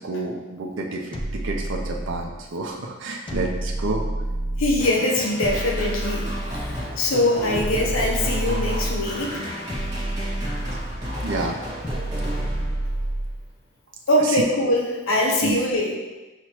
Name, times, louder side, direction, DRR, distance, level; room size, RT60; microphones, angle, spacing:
voice 1, 0.0-4.1 11.2-11.6 14.2-14.4 15.4-15.6, right 3 dB, 65° right, 0 dB, 0.5 m, -29 dB
sound 1, 1.1-2.4 3.3-4.9 5.4-6.8 7.5-9.2 9.7-11.1 11.8-13.4, right 1 dB, 25° left, 0.4 m, -29 dB
voice 2, 4.6-9.3 14.1-16.0, left 1 dB, 75° left, -1 dB, 0.7 m, -23 dB
sound 2, 4.8-13.1, equal, 20° right, 1.4 m, -33 dB
5.9 x 3.0 x 2.9 m, 1.1 s
head